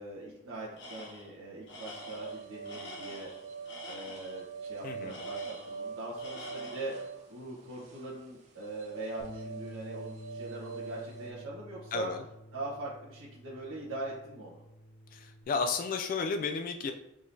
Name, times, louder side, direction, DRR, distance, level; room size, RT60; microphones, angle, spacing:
voice 1, 0.0-3.3 3.9-6.9 7.3-12.1 12.5-14.6, right 2 dB, 70° right, -9 dB, 1.2 m, -42 dB
Tools, 0.8-1.3 1.7-4.4 5.1-5.9 6.2-7.0, left 1 dB, 65° left, 1.0 m, -47 dB
sound 1, 1.9-11.3, right 5 dB, 35° right, 0.9 m, -43 dB
voice 2, 4.8-5.2 11.9-12.2 15.1-16.9, left 4 dB, 45° left, 6 dB, 0.3 m, -33 dB
Bass guitar, 9.2-15.4, equal, 5° left, 0.9 m, -49 dB
4.9 x 3.8 x 2.7 m, 0.92 s
head